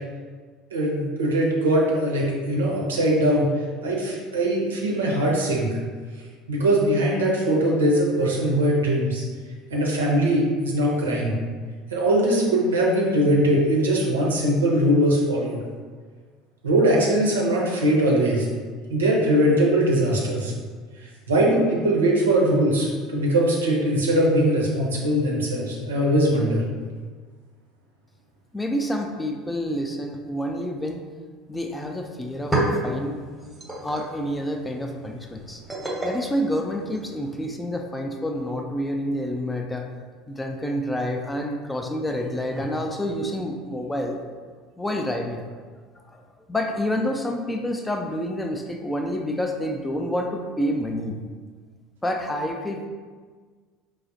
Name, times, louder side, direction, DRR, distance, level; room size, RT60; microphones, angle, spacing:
voice 1, 0.7-3.5 3.8-5.8 6.5-9.2 9.7-11.4 11.9-15.6 16.6-18.5 18.9-20.5 21.3-26.6, right 1 dB, 75° right, -2 dB, 0.6 m, -21 dB
voice 2, 28.5-31.0 31.5-32.6 32.8-33.2 33.8-35.6 36.0-39.9 40.3-44.2 44.8-45.4 46.1-46.2 46.5-51.2 52.0-52.9, equal, 10° left, 3 dB, 0.4 m, -28 dB
Tea pot set down, 32.2-37.4, right 1 dB, 10° right, 0.8 m, -31 dB
4.6 x 2.0 x 2.7 m, 1.5 s
figure-of-eight pair, 65°, 0 cm